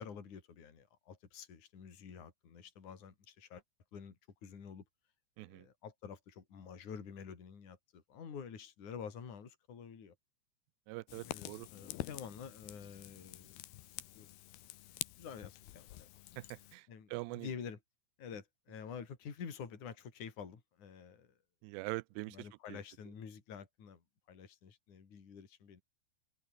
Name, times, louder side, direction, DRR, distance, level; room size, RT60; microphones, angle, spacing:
voice 1, 0.0-3.6 3.9-4.9 5.4-10.1 11.2-13.6 14.1-14.3 15.2-16.1 16.9-17.8 18.2-21.3 22.2-24.0 24.3-25.8, left 7 dB, 45° left, 5.0 m, -49 dB
voice 2, 10.9-11.7 16.4-17.5 21.6-22.8, right 22 dB, 85° right, 2.7 m, -43 dB
Fire, 11.1-16.8, left 15 dB, 75° left, 2.9 m, -47 dB
omnidirectional pair, 5.0 m